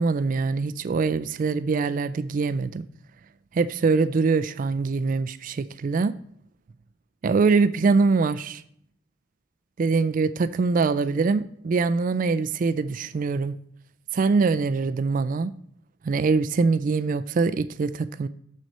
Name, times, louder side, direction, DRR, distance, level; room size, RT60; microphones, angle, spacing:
voice 1, 0.0-2.8 3.5-6.2 7.2-8.6 9.8-13.6 14.1-15.5 16.0-18.3, right 4 dB, 45° right, 0.3 m, -23 dB
6.6 x 6.2 x 4.1 m
head